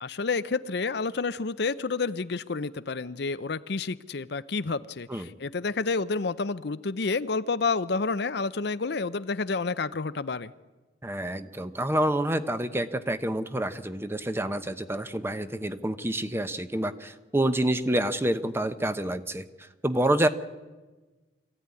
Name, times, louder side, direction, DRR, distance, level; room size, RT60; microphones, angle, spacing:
voice 1, 0.0-10.5, left 4 dB, 65° left, 13 dB, 0.7 m, -29 dB
voice 2, 11.0-19.5 19.8-20.3, right 1 dB, 15° right, 11 dB, 0.9 m, -28 dB
25.0 x 15.0 x 9.7 m, 1.3 s
head